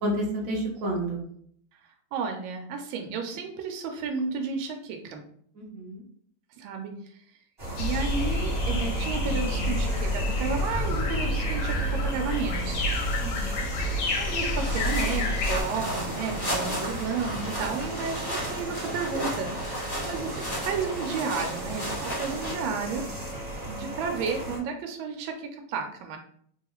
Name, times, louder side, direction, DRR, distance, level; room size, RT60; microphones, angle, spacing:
voice 1, 0.0-1.2 5.5-6.0 13.2-13.6, right 1 dB, 60° right, -2 dB, 0.8 m, -30 dB
voice 2, 2.1-5.2 6.6-6.9 7.8-12.8 14.2-19.5 20.0-23.0 23.7-26.2, right 5 dB, 80° right, 3 dB, 1.3 m, -32 dB
sound 1, 7.6-24.6, right 1 dB, 30° right, 1.4 m, -36 dB
sound 2, 7.8-15.6, left 1 dB, 90° left, 1.5 m, -28 dB
sound 3, 14.5-22.5, equal, 35° left, 0.3 m, -34 dB
3.5 x 2.3 x 2.9 m, 0.62 s
omnidirectional pair, 2.2 m